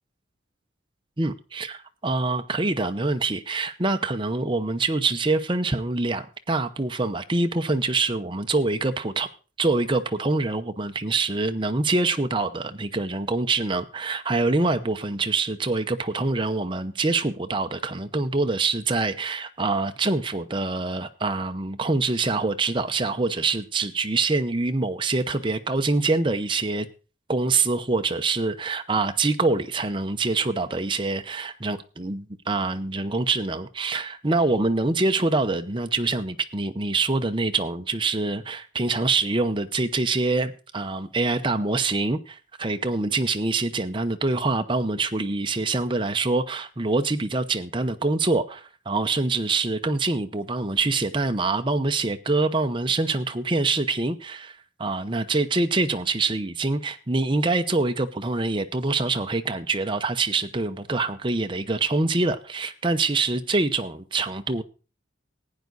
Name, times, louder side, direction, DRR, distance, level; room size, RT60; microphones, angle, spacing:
voice 1, 1.2-9.3 9.6-26.9 27.3-54.5 54.8-64.6, right 3 dB, 25° right, 0.7 m, -25 dB
15.5 x 9.5 x 4.0 m
head